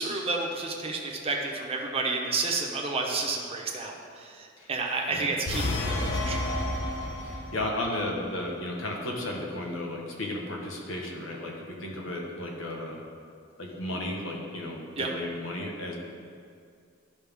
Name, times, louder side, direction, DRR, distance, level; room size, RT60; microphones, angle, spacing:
voice 1, 0.0-6.5 15.0-15.1, right 3 dB, 30° right, 0 dB, 0.9 m, -31 dB
sound 1, 5.5-7.7, left 1 dB, 65° left, 1.0 m, -30 dB
voice 2, 7.2-13.0 13.6-15.9, left 1 dB, 85° left, -1 dB, 1.3 m, -34 dB
11.5 x 5.4 x 3.6 m, 2.3 s
head